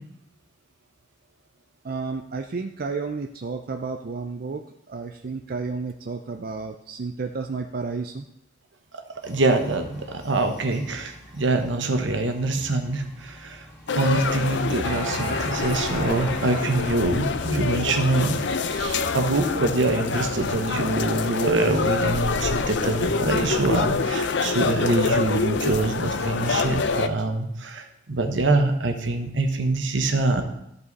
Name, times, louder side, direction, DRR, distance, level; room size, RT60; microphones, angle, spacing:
voice 1, 1.8-8.2, right 4 dB, 50° right, 5 dB, 0.5 m, -32 dB
sound 1, 9.2-21.5, right 2 dB, 10° left, 4.1 m, -41 dB
voice 2, 9.2-13.7 13.9-18.5 18.7-30.4, right 2 dB, 75° right, 5 dB, 1.1 m, -24 dB
sound 2, 13.9-27.1, left 4 dB, 65° left, 0.6 m, -26 dB
13.5 x 5.4 x 4.1 m, 0.83 s
head